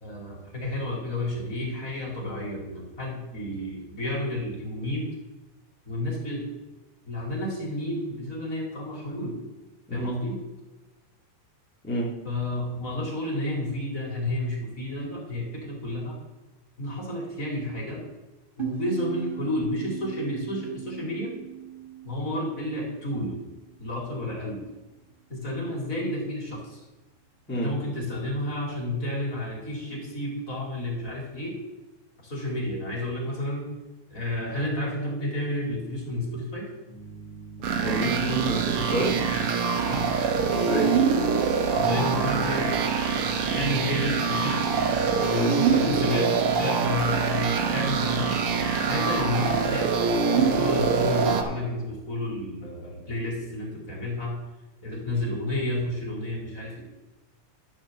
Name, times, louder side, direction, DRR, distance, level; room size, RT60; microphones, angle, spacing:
voice 1, 0.0-5.1 5.9-6.6 7.1-9.4 9.9-10.4 12.2-16.2 16.8-18.0 18.6-21.4 22.0-23.4 23.8-24.6 25.3-26.8 27.5-31.6 32.2-33.7 34.1-36.7 39.8-40.1 41.7-42.8 43.5-44.7 45.3-48.3 48.8-54.4 54.8-56.8, left 1 dB, 25° left, -3 dB, 2.4 m, -31 dB
sound 1, 18.6-23.9, right 10 dB, 40° right, 0.7 m, -39 dB
Keyboard (musical), 36.9-44.8, right 2 dB, 90° left, 3.5 m, -43 dB
sound 2, 37.6-51.4, right 5 dB, 70° right, 1.3 m, -24 dB
voice 2, 37.8-39.1 40.5-40.9 45.3-45.6, right 1 dB, 10° left, -4 dB, 0.6 m, -28 dB
12.0 x 4.4 x 7.1 m, 1.1 s
omnidirectional pair, 3.7 m